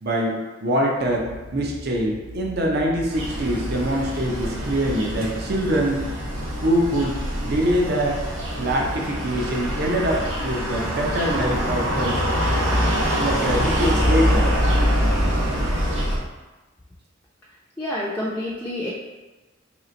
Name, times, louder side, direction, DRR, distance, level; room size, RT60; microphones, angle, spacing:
voice 1, 0.0-6.1 6.6-8.2 8.5-12.2 12.5-12.6 12.9-14.5, right 1 dB, 50° right, -1 dB, 0.6 m, -24 dB
sound 1, 1.0-16.3, left 1 dB, 85° left, 0.5 m, -40 dB
sound 2, 3.1-16.2, equal, 85° right, 0.9 m, -24 dB
voice 2, 17.8-18.9, left 1 dB, 10° left, -7 dB, 0.4 m, -28 dB
3.2 x 3.0 x 3.9 m, 1.2 s
head